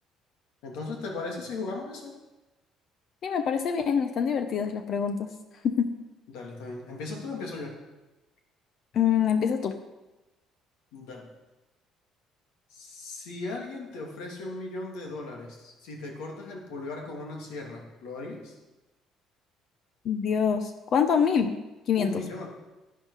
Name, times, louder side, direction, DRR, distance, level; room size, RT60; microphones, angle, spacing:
voice 1, 0.6-2.1 6.3-7.8 10.9-11.3 12.7-18.6 22.0-22.5, left 3 dB, 90° left, 0 dB, 2.4 m, -37 dB
voice 2, 3.2-5.3 5.6-5.9 8.9-9.8 20.0-21.6 21.9-22.2, left 7 dB, 55° left, 8 dB, 0.7 m, -25 dB
11.5 x 9.2 x 4.9 m, 1.1 s
cardioid pair, 105°, 0 cm